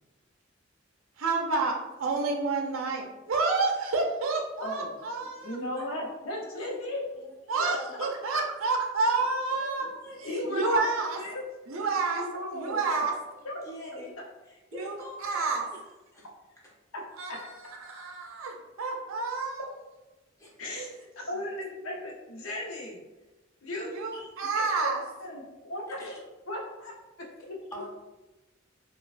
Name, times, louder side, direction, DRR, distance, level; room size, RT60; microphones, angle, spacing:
voice 1, 1.2-5.6 7.5-9.9 10.2-11.2 11.7-12.2 12.5-13.1 14.7-15.7 17.2-17.4 17.7-19.7 20.7-20.9 23.9-25.0, right 3 dB, 75° right, 2 dB, 0.5 m, -29 dB
voice 2, 4.6-4.9 5.4-7.0 7.6-7.7 8.3-8.4 10.2-11.5 12.1-13.0 13.4-13.6 13.9-14.0 16.9-17.0 17.3-17.4 20.6-23.0 23.6-23.9 24.5-24.9 25.2-26.0 26.5-27.0 27.5-27.6, left 1 dB, 90° left, -1 dB, 0.8 m, -36 dB
voice 3, 7.1-7.9 9.5-10.3 13.6-14.2 14.4-15.5 16.1-16.3 20.4-20.5 24.1-24.3 26.0-26.2 27.7-27.9, equal, 15° left, -5 dB, 0.8 m, -43 dB
4.1 x 2.3 x 2.4 m, 1.1 s
head